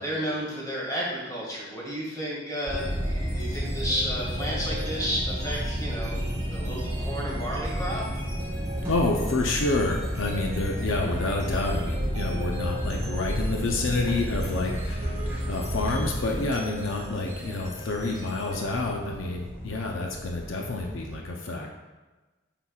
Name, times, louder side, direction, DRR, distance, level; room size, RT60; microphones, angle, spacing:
voice 1, 0.0-6.2 6.5-8.0, equal, 20° left, -5 dB, 1.9 m, -32 dB
sound 1, 2.7-21.2, equal, 10° right, 1.4 m, -32 dB
sound 2, 2.8-19.4, equal, 30° right, 2.0 m, -42 dB
voice 2, 8.9-15.2 15.5-21.7, left 2 dB, 75° left, 1 dB, 0.6 m, -28 dB
8.1 x 5.8 x 2.4 m, 1.2 s
head